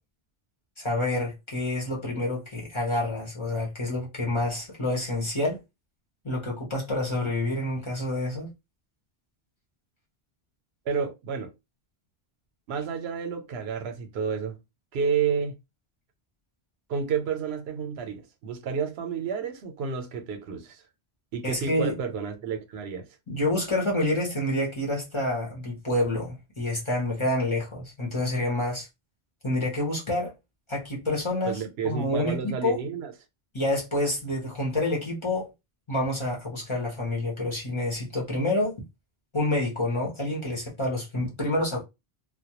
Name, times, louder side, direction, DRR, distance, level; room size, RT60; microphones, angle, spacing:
voice 1, 0.8-5.6 6.2-8.5 21.4-22.0 23.3-28.9 29.4-30.3 30.7-32.8 33.5-35.5 35.9-38.8 39.3-41.8, left 1 dB, 30° left, 0.7 m, -28 dB
voice 2, 10.9-11.5 12.7-14.6 14.9-15.6 16.9-20.8 21.3-23.1 31.4-33.1, right 6 dB, 85° right, 0.9 m, -30 dB
2.2 x 2.1 x 2.8 m
omnidirectional pair, 1.0 m